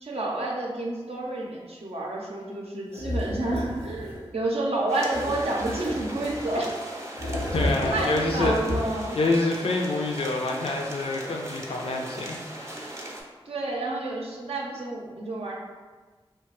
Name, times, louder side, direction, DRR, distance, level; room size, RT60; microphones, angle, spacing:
voice 1, 0.0-6.8 7.8-9.2 13.5-15.6, right 2 dB, 75° right, -2 dB, 0.5 m, -29 dB
sound 1, 2.9-4.3 5.1-6.6 7.1-9.1, left 1 dB, 85° left, 0.8 m, -31 dB
sound 2, 4.9-13.2, right 1 dB, 30° right, 0.5 m, -39 dB
voice 2, 7.5-8.5 9.2-12.8, left 2 dB, 70° left, 0 dB, 0.4 m, -27 dB
2.8 x 2.2 x 2.9 m, 1.3 s
wide cardioid pair, 50°, 10 cm